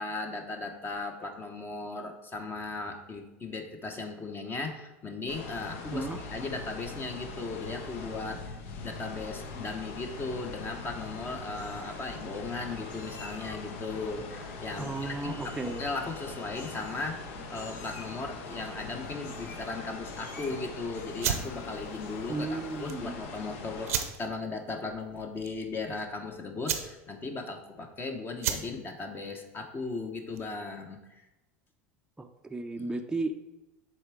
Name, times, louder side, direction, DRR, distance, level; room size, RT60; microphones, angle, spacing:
voice 1, 0.0-8.4 8.8-17.2 17.5-31.0 32.8-32.9, left 3 dB, 30° left, 4 dB, 0.9 m, -37 dB
sound 1, 5.3-24.0, left 3 dB, 75° left, 0.8 m, -42 dB
Meow, 10.8-11.2 11.5-12.2 12.9-13.7 14.7-15.1 15.4-15.8 16.5-17.2 17.5-18.3 19.2-19.7 20.0-20.6 20.9-21.5 21.9-22.4, left 3 dB, 50° left, 1.3 m, -51 dB
voice 2, 14.8-15.8 22.3-23.1 32.2-33.4, right 3 dB, 10° right, 5 dB, 0.5 m, -34 dB
sound 2, 21.1-30.7, right 9 dB, 85° right, 0.7 m, -37 dB
7.1 x 3.4 x 4.7 m, 1.0 s
hypercardioid pair, 95°, 7 cm